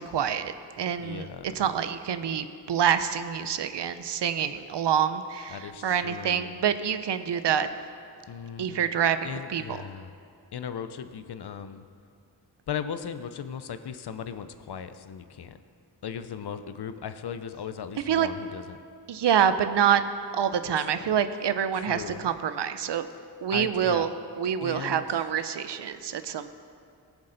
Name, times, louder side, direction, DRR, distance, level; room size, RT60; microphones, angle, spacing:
voice 1, 0.0-1.3 1.5-7.7 8.6-9.8 18.1-18.3 19.1-20.0 20.3-23.1 23.4-24.1 24.4-26.5, right 8 dB, 80° right, 11 dB, 0.7 m, -26 dB
voice 2, 1.0-1.5 5.5-6.5 8.3-8.9 9.2-10.1 10.5-11.8 12.7-15.6 16.0-18.8 20.8-20.9 21.7-22.3 23.5-24.1 24.6-25.1, left 7 dB, 70° left, 11 dB, 0.7 m, -37 dB
19.0 x 7.1 x 4.0 m, 2.4 s
wide cardioid pair, 70°, 41 cm